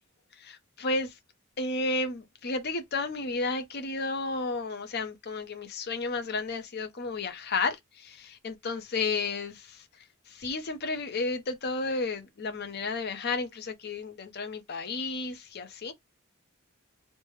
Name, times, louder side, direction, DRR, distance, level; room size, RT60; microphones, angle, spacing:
voice 1, 0.4-1.1 1.6-9.8 10.3-15.9, left 3 dB, 50° left, 0.7 m, -32 dB
3.3 x 2.1 x 3.1 m
head